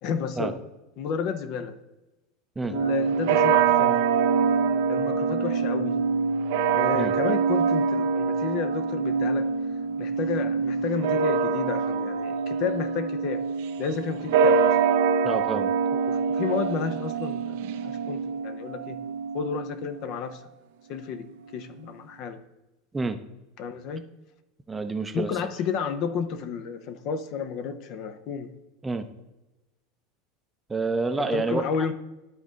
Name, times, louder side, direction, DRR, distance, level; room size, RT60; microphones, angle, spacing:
voice 1, 0.0-0.6 1.0-1.7 2.6-4.0 4.9-6.0 6.7-9.5 10.0-13.4 13.8-14.8 15.9-17.6 17.8-19.0 19.3-20.4 20.9-21.3 21.5-22.4 23.6-24.1 25.1-28.5 31.2-31.9, left 6 dB, 55° left, 10 dB, 0.7 m, -31 dB
sound 1, 2.7-20.1, right 6 dB, 75° right, 0.5 m, -25 dB
voice 2, 15.2-15.7 22.9-23.2 24.7-25.3 28.8-29.1 30.7-31.6, right 3 dB, 15° right, 8 dB, 0.5 m, -28 dB
11.5 x 3.9 x 3.7 m, 1.0 s
supercardioid pair, 115°, 0 cm